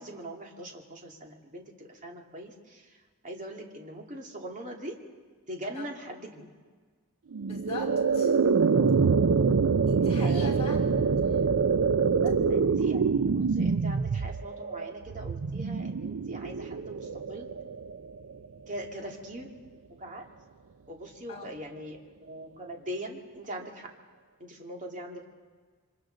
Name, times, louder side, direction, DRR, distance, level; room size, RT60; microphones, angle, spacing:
voice 1, 0.0-3.0 3.2-4.9 5.5-6.5 10.2-10.5 12.2-17.5 18.7-19.5 20.0-20.3 20.9-23.9 24.4-25.3, right 1 dB, 35° right, 1 dB, 2.3 m, -41 dB
sound 1, 7.3-18.5, right 5 dB, 65° right, 0.5 m, -25 dB
voice 2, 7.5-8.4 9.9-11.1 19.0-19.1 21.3-21.5, left 3 dB, 30° left, -4 dB, 5.3 m, -41 dB
27.5 x 24.5 x 3.9 m, 1.5 s
head